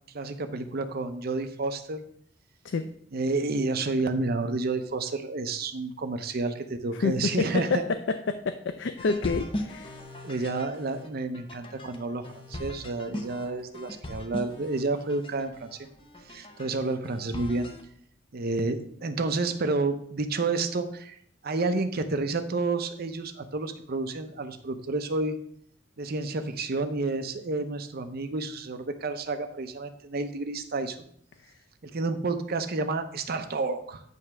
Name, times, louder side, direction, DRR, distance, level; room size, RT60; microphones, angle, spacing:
voice 1, 0.1-2.0 3.1-7.8 10.2-15.9 16.3-17.7 18.3-21.2 21.4-25.4 26.0-31.0 31.8-34.0, right 3 dB, 55° right, 8 dB, 0.7 m, -30 dB
voice 2, 7.0-9.9, left 4 dB, 70° left, 10 dB, 0.4 m, -28 dB
sound 1, 9.0-17.8, left 1 dB, 30° left, 0.9 m, -40 dB
9.4 x 3.3 x 5.9 m, 0.65 s
head